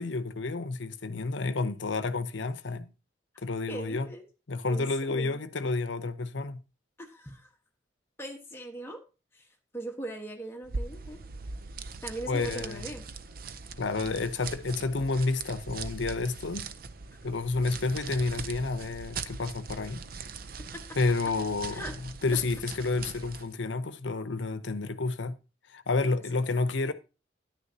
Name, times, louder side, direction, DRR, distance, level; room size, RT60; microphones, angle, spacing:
voice 1, 0.0-2.9 3.4-4.1 4.5-6.6 12.3-12.9 13.8-16.7 17.2-20.0 21.0-21.8 22.2-25.4 25.7-26.9, left 3 dB, 75° left, 0.7 m, -30 dB
voice 2, 3.7-4.3 4.7-5.4 7.0-7.5 8.2-9.0 9.3-11.2 12.0-13.0 17.1-17.2 20.7-20.9 21.7-22.0 22.3-22.4 26.1-26.2, right 1 dB, 15° left, 1.2 m, -40 dB
sound 1, 10.6-23.5, right 4 dB, 50° right, 0.5 m, -41 dB
10.0 x 9.7 x 2.8 m
head